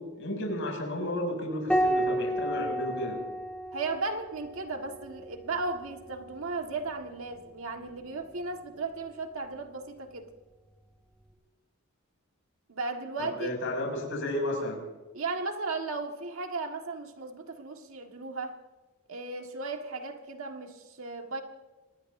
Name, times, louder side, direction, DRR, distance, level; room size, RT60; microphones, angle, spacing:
voice 1, 0.0-3.2 13.2-14.8, left 1 dB, 60° left, 6.7 m, -33 dB
Piano, 1.7-6.5 8.2-9.0, right 1 dB, 5° left, 2.3 m, -32 dB
voice 2, 3.7-10.3 12.7-13.5 15.1-18.6 19.1-21.4, right 3 dB, 70° right, 1.7 m, -35 dB
26.5 x 20.0 x 2.7 m
head